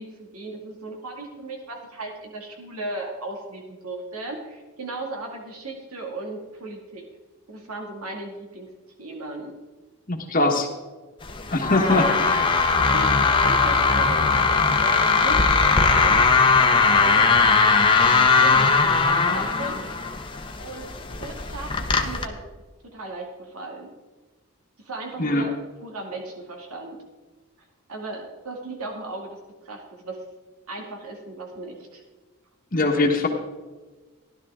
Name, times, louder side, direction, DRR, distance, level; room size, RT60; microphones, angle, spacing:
voice 1, 0.0-7.1 7.5-8.7 9.0-9.5 12.1-17.6 18.0-19.9 20.6-22.4 22.8-23.9 24.8-27.0 27.9-30.2 30.7-32.0, right 2 dB, 85° right, 1 dB, 2.2 m, -36 dB
voice 2, 10.1-10.7 11.5-12.4 25.2-25.5 32.7-33.3, left 2 dB, 40° left, 1 dB, 1.4 m, -21 dB
sound 1, 11.2-22.2, left 4 dB, 20° left, 0.9 m, -19 dB
15.5 x 11.5 x 3.7 m, 1.3 s
head